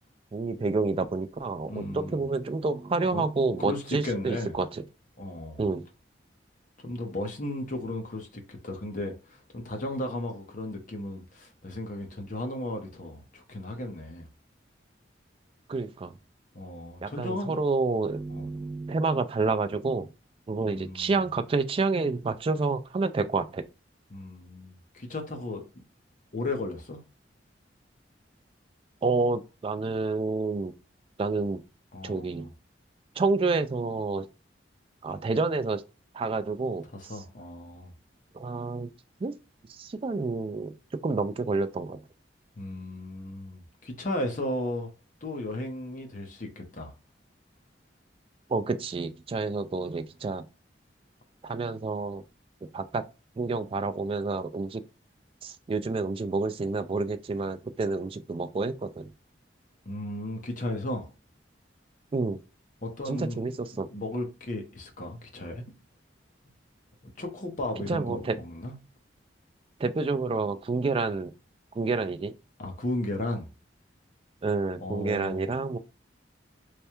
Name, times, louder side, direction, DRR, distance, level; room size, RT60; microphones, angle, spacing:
voice 1, 0.3-4.8 5.6-5.8 15.7-16.1 17.0-20.1 20.5-23.7 29.0-30.7 31.2-31.6 32.0-32.5 33.2-34.3 35.0-35.8 36.1-37.1 38.3-38.9 39.2-39.3 39.7-42.0 48.5-50.4 51.4-52.2 52.6-53.0 53.4-54.8 55.4-59.1 62.1-62.4 63.1-63.9 67.9-68.4 69.8-71.3 71.8-72.3 74.4-75.8, right 3 dB, 30° right, 0.3 m, -29 dB
voice 2, 1.7-2.2 3.1-3.2 3.6-4.6 5.2-5.6 6.8-14.3 16.5-17.6 18.3-18.5 20.6-21.3 24.1-25.8 26.3-27.0 31.9-32.5 36.9-37.9 42.6-44.9 45.2-46.9 59.9-61.1 62.8-63.5 63.7-65.7 67.2-68.7 72.6-73.5 74.8-75.5, left 1 dB, 45° left, 0.9 m, -35 dB
3.3 x 2.2 x 4.3 m
head